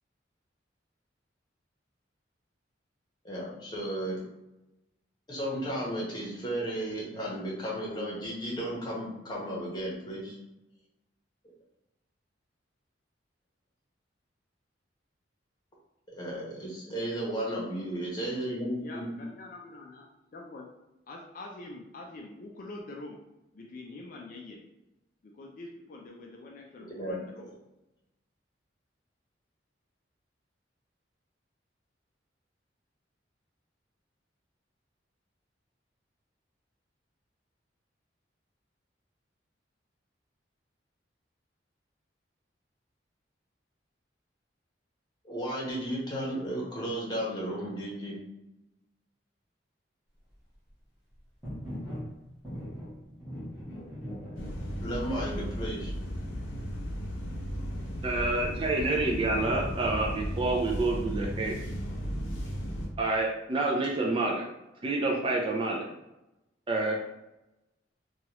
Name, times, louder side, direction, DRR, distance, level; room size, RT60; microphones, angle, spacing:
voice 1, 3.2-4.2 5.3-10.4 16.1-19.2 27.0-27.2 45.2-48.1 54.8-55.9, right 1 dB, 25° left, -5 dB, 0.9 m, -34 dB
voice 2, 18.8-20.7 21.1-23.2 23.5-24.6 25.2-27.5, left 2 dB, 45° left, 0 dB, 0.4 m, -45 dB
sound 1, 51.4-52.1 52.4-55.2, equal, 5° right, 1.1 m, -40 dB
sound 2, 54.4-62.9, equal, 90° left, 0.6 m, -35 dB
voice 3, 58.0-61.6 63.0-64.4 64.8-65.9 66.7-67.0, right 2 dB, 30° right, -1 dB, 0.3 m, -28 dB
2.9 x 2.3 x 2.9 m, 0.94 s
head